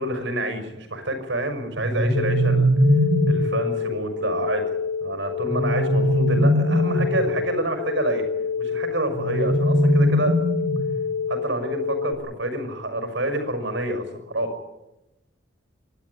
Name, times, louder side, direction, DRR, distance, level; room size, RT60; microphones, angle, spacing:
voice 1, 0.0-2.7 3.3-4.6 5.0-8.2 8.6-10.3 11.3-14.5, right 1 dB, 75° right, 5 dB, 6.0 m, -27 dB
sound 1, 1.7-3.6 5.4-7.3 9.1-11.1, equal, 60° right, 3.0 m, -21 dB
sound 2, 2.1-12.1, left 6 dB, 80° left, 1.7 m, -28 dB
25.0 x 13.0 x 9.8 m, 0.96 s
head